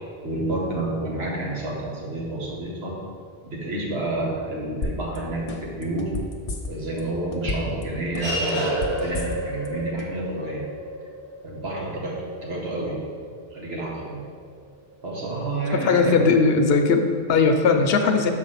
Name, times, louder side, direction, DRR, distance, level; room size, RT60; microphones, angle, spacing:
voice 1, 0.2-3.0 3.4-6.3 6.7-10.7 11.4-13.2 13.5-14.2 15.0-16.2, right 2 dB, 80° right, -3 dB, 1.6 m, -29 dB
sound 1, 4.8-5.2 5.5-7.0 7.3-7.8 8.1-9.7 10.0-10.1, left 2 dB, 45° left, 0.6 m, -30 dB
sound 2, 7.4-14.2, right 1 dB, 55° right, 2.0 m, -31 dB
voice 2, 15.8-18.3, left 4 dB, 75° left, 6 dB, 0.9 m, -19 dB
5.8 x 4.8 x 5.6 m, 2.1 s
omnidirectional pair, 1.1 m